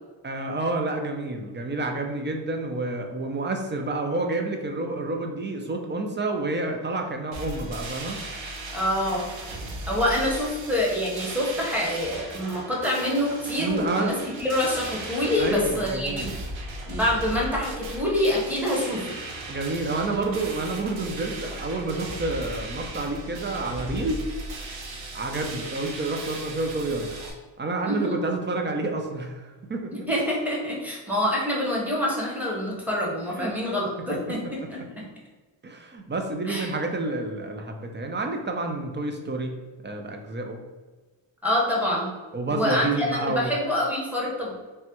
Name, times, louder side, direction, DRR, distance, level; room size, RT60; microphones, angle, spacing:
voice 1, 0.2-8.2 13.6-14.1 15.4-16.3 19.5-24.2 25.1-27.1 27.6-30.1 33.4-33.5 34.1-34.7 35.6-39.5 39.8-40.6 42.3-43.5, right 2 dB, 25° right, 4 dB, 0.4 m, -29 dB
sound 1, 7.3-27.3, right 2 dB, 85° right, 0.7 m, -37 dB
voice 2, 8.7-9.3 9.9-16.3 16.9-19.2 27.8-28.2 29.9-35.0 36.5-36.7 41.4-42.1 42.5-44.5, left 1 dB, 5° right, -4 dB, 0.9 m, -26 dB
3.3 x 2.1 x 2.9 m, 1.3 s
cardioid pair, 85°, 45 cm